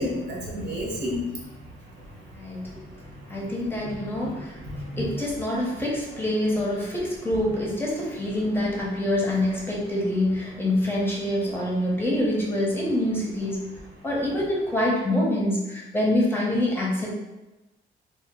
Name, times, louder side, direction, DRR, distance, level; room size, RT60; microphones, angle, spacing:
voice 1, 0.0-1.5 1.9-2.2 2.7-3.5 3.8-4.3 4.6-5.1, left 1 dB, 65° right, -4 dB, 1.0 m, -33 dB
voice 2, 2.3-2.8 3.3-4.6 5.0-13.7 14.0-17.1, left 1 dB, 10° left, -4 dB, 0.8 m, -26 dB
2.2 x 2.1 x 3.6 m, 1.1 s
cardioid pair, 90°, 20 cm